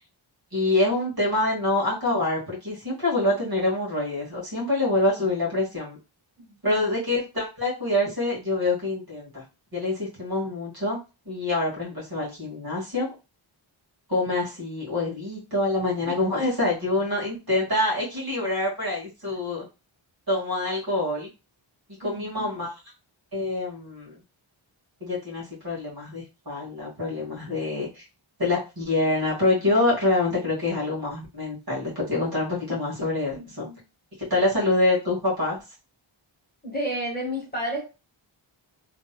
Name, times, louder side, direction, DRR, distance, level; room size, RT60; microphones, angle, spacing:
voice 1, 0.5-6.0 6.6-9.4 9.7-11.0 11.3-13.1 14.1-19.7 20.3-21.3 22.0-22.7 23.3-24.2 25.0-28.0 28.4-33.7 34.2-35.6, left 2 dB, 45° right, -4 dB, 1.9 m, -26 dB
voice 2, 6.4-6.8 16.0-16.2 19.3-19.4 22.0-22.5 33.3-33.8 36.6-37.8, equal, 20° left, -3 dB, 1.5 m, -32 dB
3.4 x 2.7 x 2.2 m, 0.28 s
wide cardioid pair, 50°, 49 cm